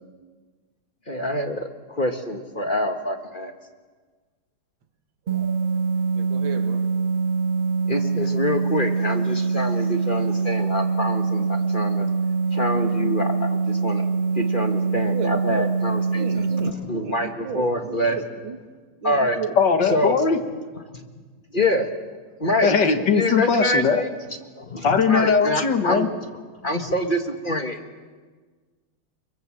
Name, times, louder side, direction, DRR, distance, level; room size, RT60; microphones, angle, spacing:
voice 1, 1.1-3.5 7.9-12.1 12.5-14.1 14.3-18.2 19.0-19.4 19.9-20.2 21.5-21.9 22.4-22.7 23.1-24.1 24.6-26.1 26.6-27.8, left 1 dB, 25° left, 5 dB, 1.6 m, -26 dB
sound 1, 5.3-16.7, right 4 dB, 40° right, 0.8 m, -24 dB
voice 2, 5.3-5.8 6.2-6.8 14.8-15.7 15.9-18.6 19.0-19.5, right 6 dB, 70° right, 7 dB, 2.4 m, -35 dB
voice 3, 19.6-20.4 22.6-24.0 24.8-26.1, left 5 dB, 60° left, 7 dB, 2.1 m, -19 dB
25.0 x 23.5 x 7.7 m, 1.5 s
omnidirectional pair, 2.3 m